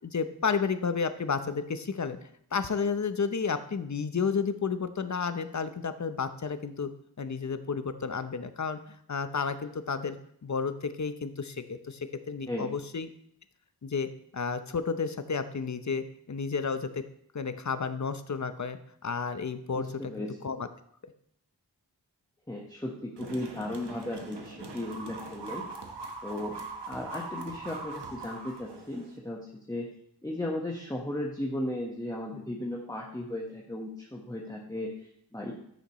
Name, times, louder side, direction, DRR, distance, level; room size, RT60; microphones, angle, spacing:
voice 1, 0.0-2.2 2.5-6.9 7.2-8.8 9.1-10.2 10.4-13.1 13.8-17.0 17.3-20.1 20.4-20.7, left 5 dB, 45° left, 10 dB, 0.8 m, -31 dB
voice 2, 19.7-20.3 22.5-25.6 26.2-26.6 26.9-29.8 30.2-35.5, left 1 dB, 10° left, -2 dB, 1.3 m, -36 dB
sound 1, 23.2-29.2, right 3 dB, 85° right, 1.3 m, -41 dB
14.5 x 6.5 x 3.1 m, 0.70 s
wide cardioid pair, 60°, 40 cm